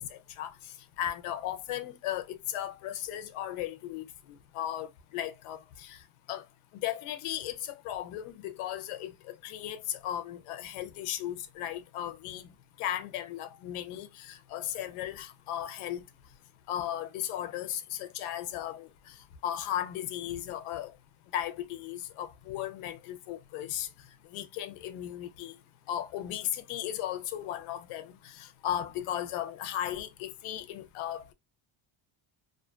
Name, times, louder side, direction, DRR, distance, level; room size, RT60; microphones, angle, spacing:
voice 1, 0.0-4.1 4.5-6.0 6.3-6.4 6.8-12.5 12.8-16.0 16.7-20.9 21.3-23.9 24.3-25.5 25.9-31.3, left 11 dB, 80° left, 0.6 m, -36 dB
2.5 x 2.3 x 2.3 m
cardioid pair, 150°, 49 cm